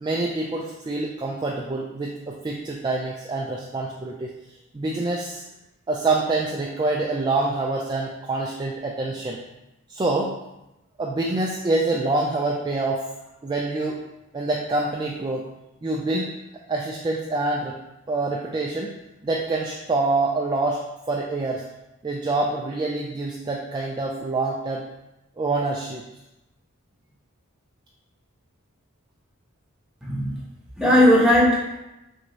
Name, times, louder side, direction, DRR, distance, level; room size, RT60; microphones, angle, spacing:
voice 1, 0.0-4.3 4.7-5.4 5.9-9.4 9.9-10.3 11.0-13.0 13.4-14.0 14.3-15.4 15.8-16.3 16.7-17.8 18.1-18.9 19.2-21.6 22.0-24.8 25.4-26.0, right 2 dB, 20° right, -2 dB, 0.3 m, -26 dB
voice 2, 30.0-30.4 30.8-31.8, left 1 dB, 5° right, -5 dB, 0.9 m, -18 dB
6.0 x 2.7 x 3.0 m, 0.94 s
head